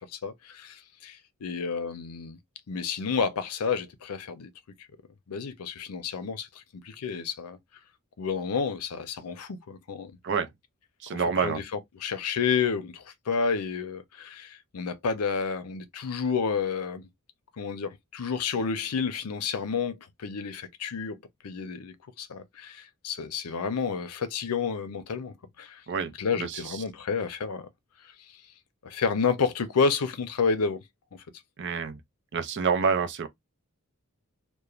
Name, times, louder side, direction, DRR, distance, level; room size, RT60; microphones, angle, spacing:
voice 1, 0.1-2.4 2.7-4.5 5.3-6.5 6.8-7.6 8.2-10.1 11.1-11.6 12.0-17.1 17.6-21.2 21.4-25.8 26.2-27.7 28.8-30.8 31.1-31.2, left 5 dB, 90° left, 0.6 m, -30 dB
voice 2, 11.0-11.6 25.9-26.8 31.6-32.0 32.3-33.3, right 6 dB, 50° right, 0.5 m, -28 dB
3.0 x 2.1 x 2.4 m
head